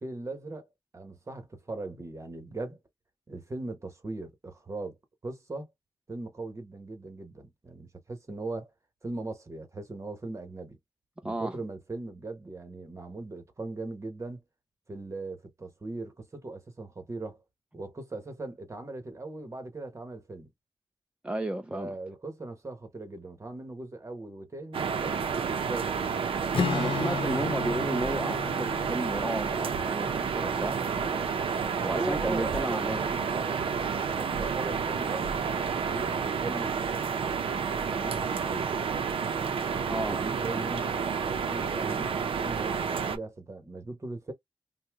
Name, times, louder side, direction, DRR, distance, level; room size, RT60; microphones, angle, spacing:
voice 1, 0.0-2.8 3.3-5.0 5.2-5.7 6.1-8.7 9.0-10.8 11.2-14.4 14.9-17.4 17.7-20.5 21.7-26.1 31.9-33.8 34.2-36.7 37.8-39.0 39.7-44.3, right 2 dB, 30° right, 1.0 m, -39 dB
voice 2, 11.2-11.6 21.2-22.0 26.7-31.4 31.8-33.0 39.9-40.2, right 1 dB, 15° right, 0.3 m, -33 dB
sound 1, 24.7-43.2, right 6 dB, 80° right, 0.5 m, -30 dB
Strum, 26.5-30.6, left 6 dB, 75° left, 0.7 m, -34 dB
2.7 x 2.1 x 3.4 m
wide cardioid pair, 100°, 9 cm